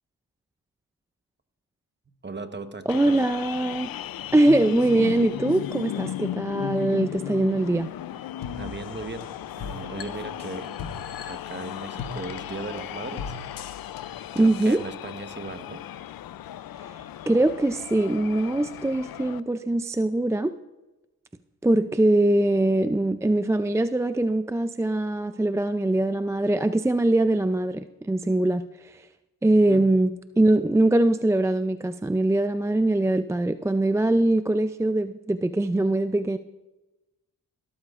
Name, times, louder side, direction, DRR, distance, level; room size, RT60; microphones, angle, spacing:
voice 1, 2.2-3.2 8.6-9.3 9.6-10.7 11.3-13.3 14.4-15.8 29.7-29.8, right 3 dB, 25° right, 8 dB, 1.1 m, -37 dB
sound 1, 2.9-19.4, left 11 dB, 60° left, 0.5 m, -36 dB
voice 2, 2.9-3.9 4.3-7.9 14.4-14.8 16.8-20.5 21.6-29.1 29.4-36.4, right 1 dB, 10° right, 11 dB, 0.3 m, -22 dB
sound 2, 8.4-14.8, left 5 dB, 75° left, 1.1 m, -40 dB
16.5 x 13.0 x 2.5 m, 1.1 s
cardioid pair, 55°, 40 cm